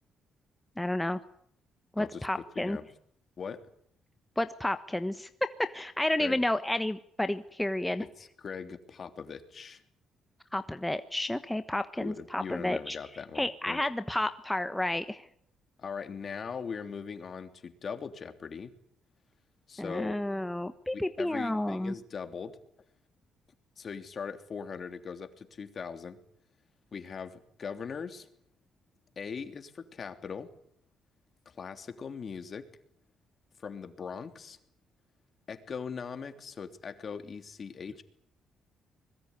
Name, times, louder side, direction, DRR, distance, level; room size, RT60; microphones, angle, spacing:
voice 1, 0.8-1.2 2.0-2.8 4.4-5.3 5.6-8.0 10.5-13.0 13.3-15.2 19.8-21.9, left 1 dB, 10° left, 10 dB, 1.2 m, -31 dB
voice 2, 2.5-2.9 3.4-3.7 6.2-6.4 8.0-9.8 12.0-13.8 15.8-18.7 19.7-20.2 20.9-22.6 23.8-26.2 26.9-28.3 29.2-30.5 31.4-32.7 33.6-34.6 35.5-38.0, left 6 dB, 45° left, 9 dB, 3.1 m, -40 dB
25.0 x 21.5 x 9.7 m, 0.66 s
cardioid pair, 90°, 0 cm